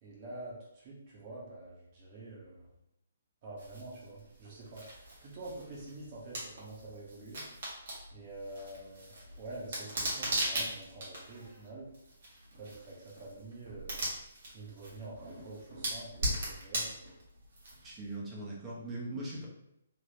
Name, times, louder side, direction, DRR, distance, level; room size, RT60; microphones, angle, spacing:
voice 1, 0.0-2.7 3.4-7.4 8.1-11.9 12.6-14.0 14.5-17.1, right 2 dB, 35° right, -5 dB, 1.2 m, -47 dB
sound 1, 3.6-18.1, right 1 dB, 55° right, 1.4 m, -40 dB
voice 2, 17.8-19.5, right 1 dB, 15° right, -5 dB, 1.0 m, -40 dB
3.6 x 2.8 x 2.9 m, 0.81 s
figure-of-eight pair, 130°, 0 cm